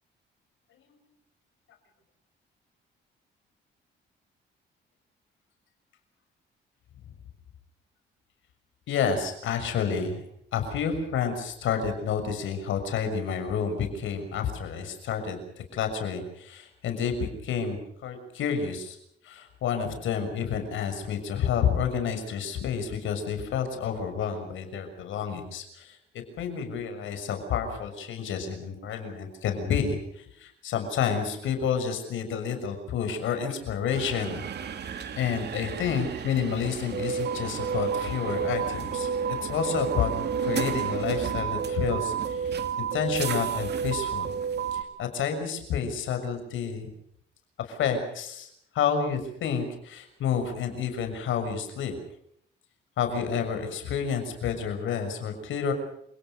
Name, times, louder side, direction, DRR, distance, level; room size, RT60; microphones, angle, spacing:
voice 1, 8.9-10.2 10.5-15.4 15.7-19.0 19.2-26.0 26.4-34.4 35.2-39.1 39.4-40.1 40.4-44.3 44.7-46.9 47.6-48.5 48.7-51.9 53.0-55.7, left 7 dB, 80° left, 7 dB, 6.4 m, -29 dB
sound 1, 33.9-44.8, right 7 dB, 55° right, 2.8 m, -31 dB
29.0 x 18.5 x 6.9 m, 0.70 s
cardioid pair, 90°, 20 cm